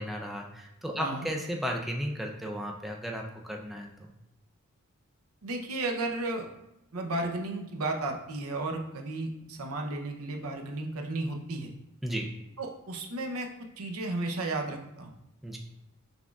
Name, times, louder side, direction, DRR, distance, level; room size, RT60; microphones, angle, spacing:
voice 1, 0.0-4.1 12.0-12.3 15.4-15.6, equal, ahead, 1 dB, 0.4 m, -34 dB
voice 2, 5.4-6.5 6.9-11.7 12.6-13.5 13.8-15.1, right 2 dB, 75° right, 3 dB, 0.7 m, -33 dB
6.0 x 3.5 x 2.3 m, 0.86 s
head